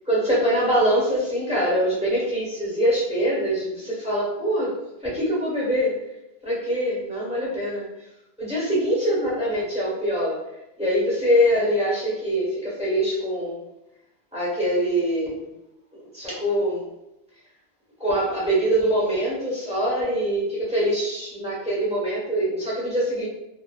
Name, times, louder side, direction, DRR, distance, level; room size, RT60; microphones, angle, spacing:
voice 1, 0.0-4.7 5.0-6.0 6.4-7.9 8.4-10.4 10.8-13.6 14.3-15.4 16.1-16.9 18.0-23.3, equal, 5° right, -7 dB, 1.0 m, -23 dB
2.5 x 2.4 x 2.2 m, 0.87 s
omnidirectional pair, 1.4 m